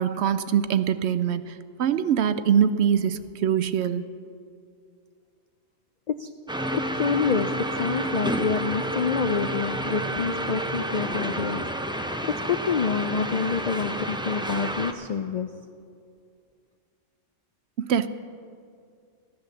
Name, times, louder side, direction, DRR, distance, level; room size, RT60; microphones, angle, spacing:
voice 1, 0.0-4.0 17.8-18.1, right 8 dB, 65° right, 13 dB, 0.8 m, -23 dB
sound 1, 6.5-14.9, right 1 dB, 5° right, 0.4 m, -30 dB
voice 2, 6.7-11.8 12.2-15.6, left 5 dB, 65° left, 8 dB, 0.4 m, -27 dB
15.0 x 11.0 x 7.0 m, 2.3 s
omnidirectional pair, 1.3 m